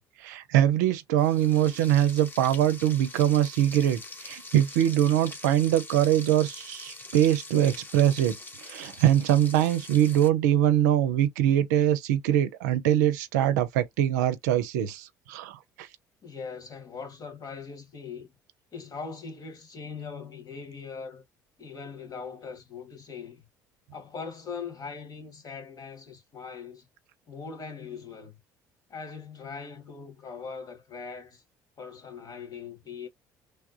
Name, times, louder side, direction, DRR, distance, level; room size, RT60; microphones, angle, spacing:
voice 1, 0.0-15.9, right 11 dB, 80° right, 0.5 m, -23 dB
Frying (food), 1.2-10.3, left 2 dB, 20° left, 1.1 m, -44 dB
voice 2, 16.2-18.3 18.7-21.2 21.6-23.5 23.9-26.9 27.3-28.4 28.9-31.4 31.8-33.1, left 5 dB, 45° left, 1.9 m, -40 dB
3.3 x 2.3 x 2.6 m
hypercardioid pair, 60°, 9 cm